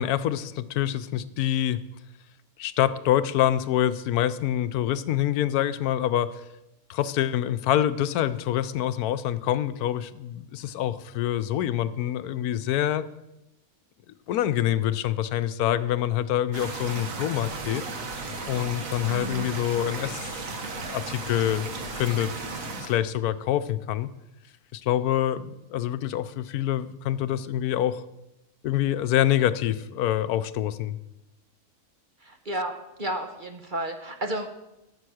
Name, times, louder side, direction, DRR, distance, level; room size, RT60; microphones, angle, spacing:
voice 1, 0.0-1.8 2.6-6.4 6.9-13.0 14.3-17.8 18.5-21.7 21.9-22.3 22.7-24.1 24.7-28.0 28.6-31.0, left 11 dB, 80° left, 13 dB, 1.1 m, -26 dB
sound 1, 16.5-23.0, right 3 dB, 60° right, 1.6 m, -35 dB
voice 2, 19.1-19.5 32.2-34.5, right 1 dB, 40° right, 5 dB, 0.9 m, -32 dB
13.0 x 6.8 x 6.3 m, 0.93 s
omnidirectional pair, 1.6 m